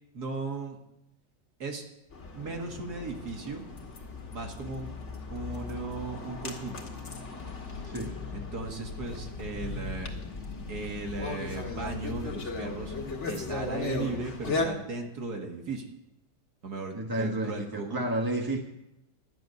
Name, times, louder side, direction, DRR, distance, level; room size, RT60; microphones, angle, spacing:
voice 1, 0.1-0.8 1.6-1.8 2.3-3.6 4.3-4.9 5.3-6.8 8.3-10.1 10.7-12.9 13.3-15.9 16.6-18.1, right 3 dB, 55° right, 3 dB, 2.2 m, -36 dB
sound 1, 2.1-14.7, left 3 dB, 40° left, 1.9 m, -37 dB
voice 2, 7.9-8.2 16.9-18.6, right 1 dB, 15° right, 1 dB, 0.8 m, -31 dB
12.0 x 7.2 x 9.5 m, 0.88 s
omnidirectional pair, 2.1 m